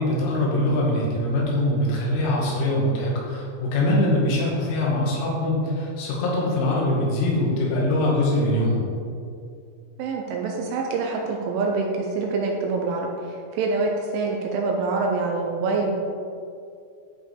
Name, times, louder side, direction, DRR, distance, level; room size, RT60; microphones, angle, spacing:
voice 1, 0.0-8.9, left 1 dB, 85° left, -4 dB, 4.5 m, -23 dB
voice 2, 10.0-15.9, right 3 dB, 80° right, 0 dB, 3.0 m, -25 dB
13.0 x 5.5 x 3.4 m, 2.4 s
omnidirectional pair, 5.9 m